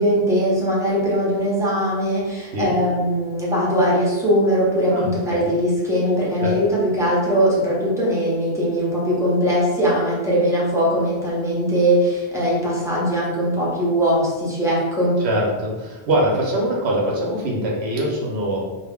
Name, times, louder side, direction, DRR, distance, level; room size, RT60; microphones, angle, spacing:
voice 1, 0.0-15.2, equal, 5° right, -7 dB, 0.6 m, -20 dB
voice 2, 4.9-5.5 6.4-6.6 15.2-18.6, right 1 dB, 80° right, -2 dB, 0.9 m, -23 dB
2.3 x 2.1 x 3.4 m, 1.2 s
omnidirectional pair, 1.1 m